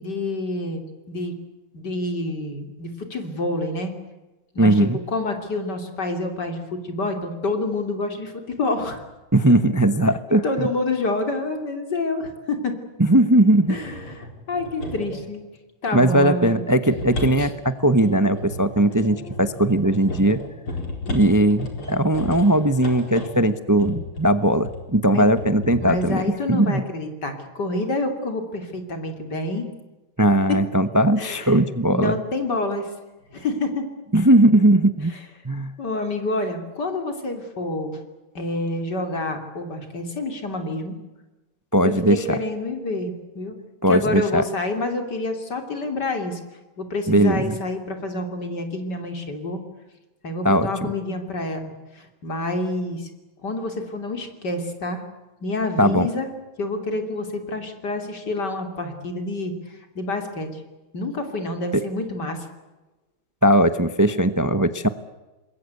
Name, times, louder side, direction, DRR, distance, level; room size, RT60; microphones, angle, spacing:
voice 1, 0.0-1.4 1.7-3.9 4.5-9.0 10.4-12.8 13.7-15.4 15.8-16.6 17.4-17.5 25.1-25.3 25.8-29.7 30.5-30.6 31.2-31.6 31.9-32.9 33.3-33.8 35.8-38.0 38.4-41.0 41.8-43.6 43.9-46.4 46.8-49.6 50.2-53.1 53.4-55.0 55.4-56.3 56.6-60.6 60.9-62.5, left 2 dB, 55° left, 6 dB, 3.6 m, -28 dB
voice 2, 4.6-5.0 9.3-10.7 13.0-13.8 15.9-20.4 21.1-26.8 30.2-32.2 34.1-35.1 35.4-35.7 41.7-42.2 43.8-44.4 47.1-47.6 50.4-50.9 55.8-56.1 61.7-61.8 63.4-64.9, right 1 dB, 30° right, 12 dB, 0.3 m, -19 dB
sound 1, 13.7-15.3 16.4-24.9 25.4-26.2, left 2 dB, 85° left, 5.2 m, -34 dB
27.0 x 21.5 x 8.3 m, 1.1 s
omnidirectional pair, 2.3 m